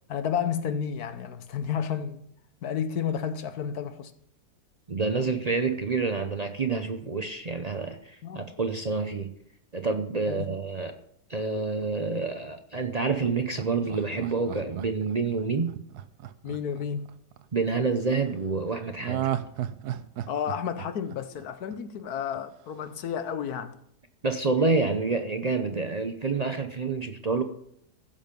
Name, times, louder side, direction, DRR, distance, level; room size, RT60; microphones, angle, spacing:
voice 1, 0.1-2.2 2.6-4.1 8.2-8.5 10.3-10.6 16.4-17.1 20.3-23.8, left 8 dB, 65° left, 1.3 m, -31 dB
voice 2, 4.9-9.3 9.7-10.9 11.3-15.7 17.5-19.3 24.2-27.4, right 4 dB, 50° right, 0.4 m, -28 dB
Laughter, 13.2-17.4 19.0-22.0 22.3-22.4, right 11 dB, 70° right, 1.2 m, -34 dB
15.5 x 7.1 x 5.2 m
omnidirectional pair, 1.8 m